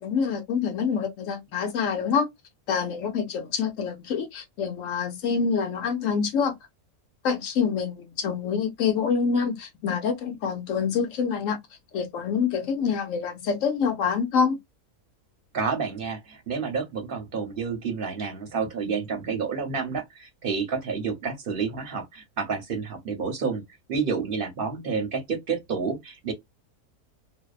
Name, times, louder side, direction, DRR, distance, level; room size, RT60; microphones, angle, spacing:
voice 1, 0.0-2.3 2.7-6.5 7.2-11.6 11.9-14.6, left 6 dB, 65° left, 0.9 m, -26 dB
voice 2, 15.5-23.6 23.9-26.3, right 5 dB, 50° right, 0.7 m, -29 dB
2.6 x 2.1 x 2.3 m
omnidirectional pair, 1.6 m